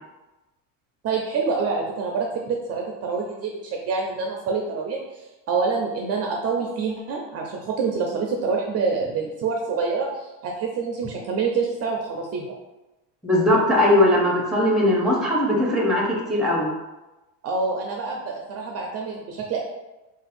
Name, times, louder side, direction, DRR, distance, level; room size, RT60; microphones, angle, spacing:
voice 1, 1.0-12.5 17.4-19.6, right 4 dB, 40° right, 0 dB, 0.4 m, -27 dB
voice 2, 13.2-16.7, left 1 dB, ahead, -2 dB, 0.6 m, -19 dB
2.6 x 2.4 x 4.0 m, 1.0 s
cardioid pair, 135°, 39 cm